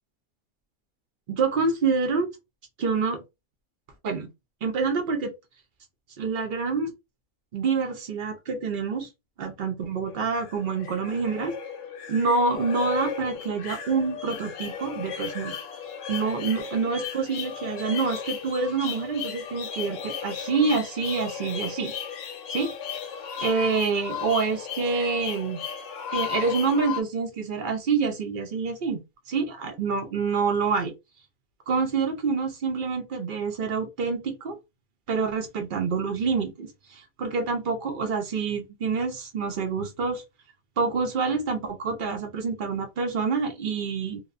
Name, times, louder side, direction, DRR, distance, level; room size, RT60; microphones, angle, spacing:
voice 1, 1.3-2.3 2.8-3.2 4.0-4.3 4.6-5.3 6.2-6.9 7.5-9.1 9.4-11.6 12.1-15.6 16.1-21.9 22.5-22.7 23.4-25.6 26.1-29.0 29.3-30.9 31.7-34.6 35.1-40.2 40.8-44.2, right 4 dB, 75° right, 0.4 m, -27 dB
sound 1, 10.1-27.0, left 7 dB, 70° left, 0.8 m, -35 dB
2.9 x 2.1 x 2.4 m
omnidirectional pair, 1.5 m